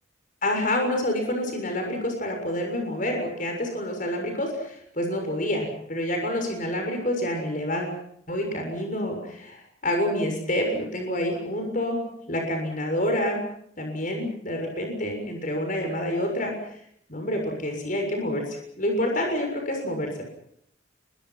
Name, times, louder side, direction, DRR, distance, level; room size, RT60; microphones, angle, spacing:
voice 1, 0.4-8.0 8.3-12.0 12.3-13.4 13.8-16.5 17.1-20.2, left 1 dB, 40° left, 3 dB, 6.9 m, -28 dB
29.0 x 23.0 x 6.0 m, 0.70 s
head